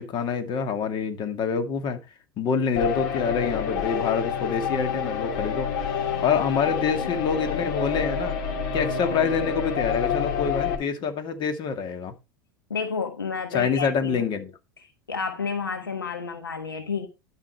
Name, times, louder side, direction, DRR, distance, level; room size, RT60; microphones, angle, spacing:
voice 1, 0.0-2.0 2.4-5.7 6.2-8.4 8.7-12.1 13.5-14.5, left 6 dB, 45° left, 2.3 m, -26 dB
sound 1, 2.8-10.8, left 7 dB, 65° left, 2.5 m, -28 dB
voice 2, 12.7-14.3 15.1-17.1, left 5 dB, 90° left, 1.4 m, -30 dB
12.5 x 5.6 x 4.5 m
hypercardioid pair, 85°, 11 cm